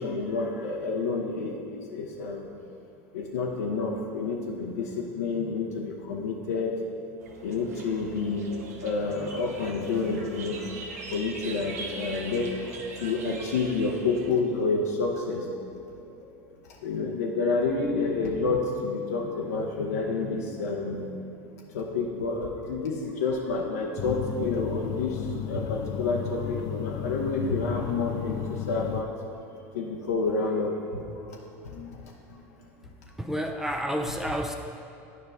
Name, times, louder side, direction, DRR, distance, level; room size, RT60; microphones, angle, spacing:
voice 1, 0.0-2.5 3.1-6.8 7.4-15.5 16.8-21.2 21.7-29.1 29.7-31.4 31.6-32.0 32.3-32.4, left 3 dB, 90° left, -1 dB, 0.7 m, -29 dB
sound 1, 7.2-14.3, right 3 dB, 90° right, 0.7 m, -42 dB
sound 2, 24.0-29.0, left 11 dB, 50° left, 0.4 m, -34 dB
voice 2, 33.2-34.6, equal, 5° right, 3 dB, 0.5 m, -30 dB
9.4 x 5.2 x 3.5 m, 2.9 s
hypercardioid pair, 95°, 8 cm